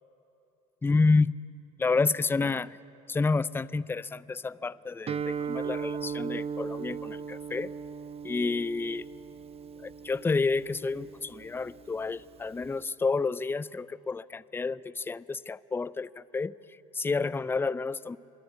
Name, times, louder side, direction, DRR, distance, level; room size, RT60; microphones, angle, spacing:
voice 1, 0.8-1.3 1.8-2.8 3.1-7.7 8.2-9.0 9.8-16.6 16.9-18.2, left 4 dB, 10° left, 20 dB, 0.5 m, -29 dB
Guitar, 5.1-12.8, right 6 dB, 30° right, 0.8 m, -38 dB
24.0 x 21.0 x 8.1 m, 2.8 s
hypercardioid pair, 70°, 19 cm